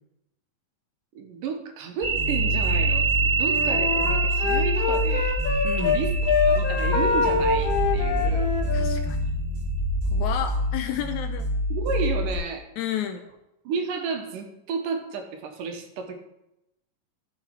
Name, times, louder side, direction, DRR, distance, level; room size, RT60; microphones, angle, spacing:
voice 1, 1.2-5.3 5.8-8.5 11.7-12.7 13.6-16.2, right 5 dB, 75° right, 5 dB, 2.7 m, -32 dB
sound 1, 2.0-10.6, right 4 dB, 10° right, 1.3 m, -28 dB
sound 2, 2.1-12.3, left 1 dB, 60° right, 2.9 m, -27 dB
Wind instrument woodwind instrument, 3.4-6.0 6.2-9.0, left 4 dB, 60° left, 1.8 m, -25 dB
voice 2, 5.6-6.0 8.7-9.2 10.1-11.5 12.8-13.2, left 10 dB, 80° left, 7 dB, 1.8 m, -31 dB
13.5 x 6.7 x 4.7 m, 0.88 s
omnidirectional pair, 3.9 m